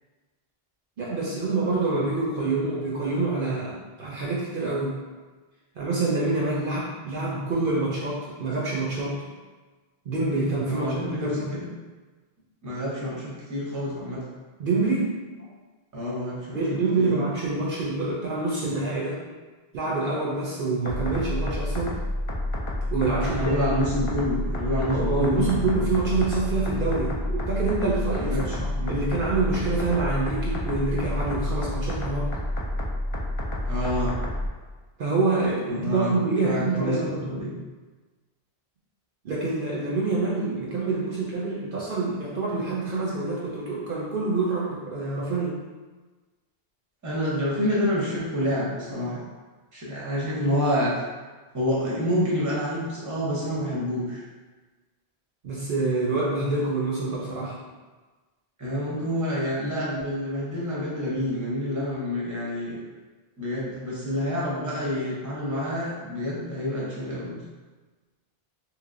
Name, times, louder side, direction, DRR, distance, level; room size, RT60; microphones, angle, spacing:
voice 1, 1.0-5.0 5.8-9.2 10.1-11.5 14.6-15.1 16.5-19.2 19.7-22.0 22.9-23.6 24.9-32.3 35.0-37.2 39.2-45.6 55.4-57.6, right 3 dB, 60° right, -5 dB, 0.7 m, -26 dB
voice 2, 10.7-11.7 12.6-14.2 15.9-17.2 23.2-25.8 28.2-29.0 33.7-34.2 35.7-36.1 36.4-37.0 37.2-37.5 47.0-49.2 49.7-51.0 51.5-54.3 58.6-62.8 63.4-67.4, equal, 20° right, -6 dB, 0.7 m, -28 dB
sound 1, 20.9-34.5, left 1 dB, 50° left, 0.3 m, -29 dB
3.1 x 3.0 x 2.5 m, 1.3 s
omnidirectional pair, 1.1 m